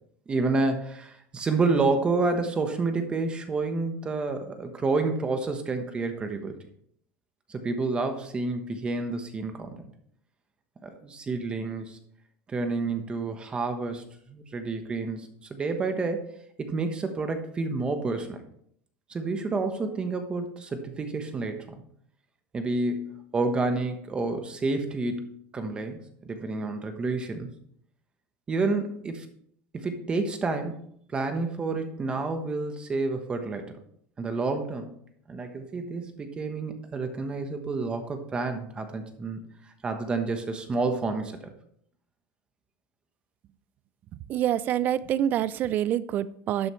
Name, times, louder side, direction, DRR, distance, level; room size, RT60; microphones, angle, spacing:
voice 1, 0.3-6.6 7.5-9.8 10.8-12.0 12.5-14.0 14.3-16.2 16.6-18.4 19.1-21.8 22.5-27.5 28.5-29.3 29.7-30.8 31.1-33.8 34.2-35.0 35.3-39.4 39.8-41.4, right 3 dB, 15° right, 7 dB, 1.1 m, -29 dB
voice 2, 44.1-46.7, right 11 dB, 30° right, 18 dB, 0.4 m, -26 dB
12.5 x 9.0 x 3.2 m, 0.66 s
cardioid pair, 165°, 6 cm